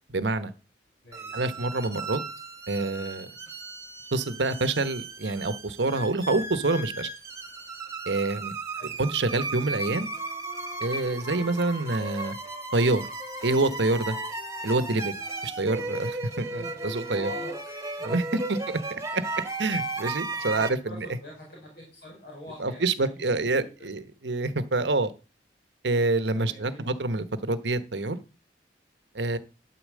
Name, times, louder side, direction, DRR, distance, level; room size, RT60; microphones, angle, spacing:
voice 1, 0.1-0.5 1.3-2.2 2.7-3.3 4.1-7.1 8.1-8.6 9.0-10.1 10.8-12.4 12.7-13.1 13.4-14.2 14.6-15.1 15.4-17.3 18.0-18.2 18.5-18.8 19.1-19.2 19.6-21.1 22.6-25.1 25.8-28.2 29.1-29.4, right 2 dB, 75° right, 13 dB, 1.1 m, -27 dB
voice 2, 1.0-1.6 8.7-9.0 17.1-18.2 20.6-23.9 26.3-26.9, equal, 65° left, -1 dB, 4.4 m, -45 dB
sound 1, 1.1-20.7, right 2 dB, 20° right, 1.5 m, -36 dB
Wind instrument woodwind instrument, 9.7-16.0, right 1 dB, 30° left, 2.7 m, -46 dB
12.5 x 4.5 x 7.5 m, 0.35 s
head